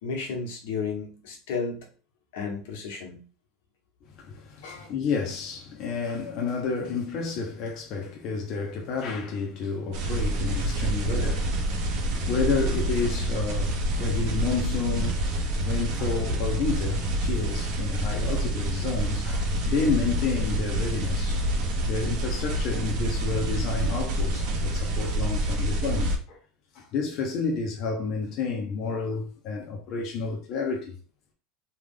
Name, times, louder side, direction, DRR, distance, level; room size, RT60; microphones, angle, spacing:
voice 1, 0.0-1.9 2.3-3.2 4.6-4.9, left 5 dB, 85° left, 1.3 m, -33 dB
voice 2, 4.2-15.2 15.6-21.4 21.9-26.4 26.7-31.0, left 4 dB, 40° left, 0.7 m, -30 dB
sound 1, 9.9-26.2, right 1 dB, 50° right, 1.0 m, -27 dB
3.3 x 2.4 x 3.6 m
cardioid pair, 175°, 0 cm